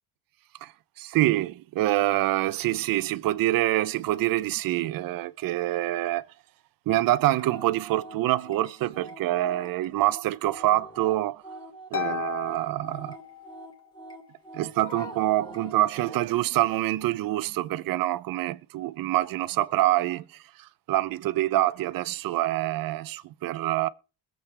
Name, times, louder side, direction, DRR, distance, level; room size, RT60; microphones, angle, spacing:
voice 1, 1.0-6.2 6.9-11.4 11.9-13.1 14.5-20.2 20.6-23.9, right 15 dB, 65° right, 0.9 m, -26 dB
sound 1, 7.4-16.3, right 1 dB, 10° left, 2.8 m, -44 dB
Harp, 11.9-13.8, left 10 dB, 40° left, 1.5 m, -35 dB
21.5 x 7.8 x 3.5 m
cardioid pair, 115°, 36 cm